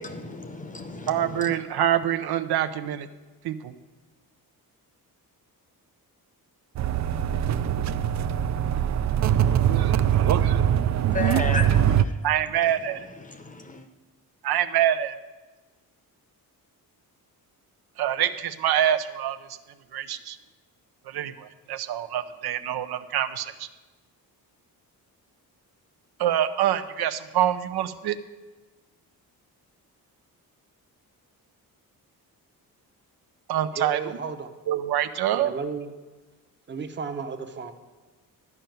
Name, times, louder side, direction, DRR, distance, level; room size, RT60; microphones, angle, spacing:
voice 1, 0.0-1.1 1.4-1.5 11.1-12.0 13.4-13.8, left 3 dB, 20° left, 8 dB, 0.7 m, -32 dB
voice 2, 1.1-3.1 3.4-3.7 9.5-10.6 12.2-13.0 14.4-15.2 18.0-19.4 19.9-20.4 21.1-23.7 26.2-28.2 33.5-34.0 34.7-35.5, right 11 dB, 90° right, 11 dB, 0.7 m, -26 dB
sound 1, 6.8-12.0, right 10 dB, 50° right, 0.4 m, -22 dB
voice 3, 33.7-34.5 35.3-35.9 36.7-37.7, right 5 dB, 30° right, 8 dB, 0.8 m, -33 dB
12.0 x 5.6 x 9.0 m, 1.2 s
wide cardioid pair, 170°, 37 cm